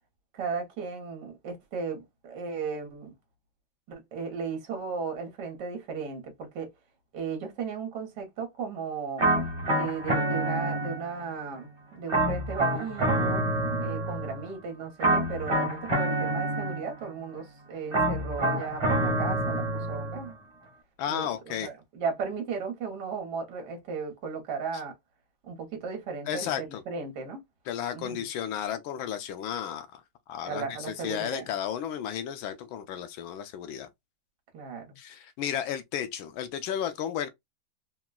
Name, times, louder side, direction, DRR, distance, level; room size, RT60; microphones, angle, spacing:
voice 1, 0.3-3.1 3.9-6.7 7.1-9.2 9.7-13.4 13.8-20.4 21.1-24.9 25.4-27.4 27.9-28.2 30.4-31.5 34.5-35.0, right 5 dB, 65° right, 1.5 m, -36 dB
sound 1, 9.2-11.3 12.1-14.5 15.0-17.1 17.9-20.3, right 1 dB, 40° right, 1.2 m, -27 dB
voice 2, 21.0-21.7 26.3-26.8 27.7-30.0 30.3-33.9 35.0-37.3, left 9 dB, 85° left, 1.4 m, -33 dB
3.9 x 2.2 x 2.3 m
omnidirectional pair, 2.2 m